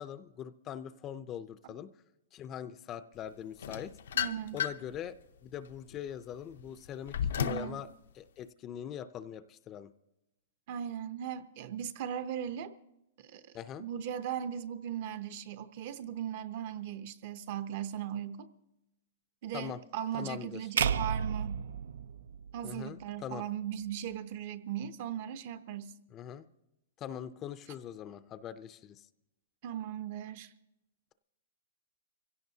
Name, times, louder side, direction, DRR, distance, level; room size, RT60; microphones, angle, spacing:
voice 1, 0.0-1.9 2.3-3.9 4.5-5.1 5.4-7.9 8.1-9.9 13.5-13.8 19.5-19.8 20.1-20.6 22.6-23.4 26.1-26.5 27.0-29.1, left 9 dB, 20° left, 0.5 m, -42 dB
sound 1, 3.6-5.0 5.5-7.8, left 8 dB, 75° left, 0.6 m, -34 dB
voice 2, 4.1-4.6 7.4-7.8 10.7-12.7 13.2-13.4 13.8-18.5 19.4-21.6 22.5-25.9 29.6-30.5, right 9 dB, 45° right, 0.7 m, -38 dB
sound 2, 20.8-23.0, right 7 dB, 80° right, 0.4 m, -32 dB
25.0 x 16.5 x 2.8 m
hypercardioid pair, 160°, 0 cm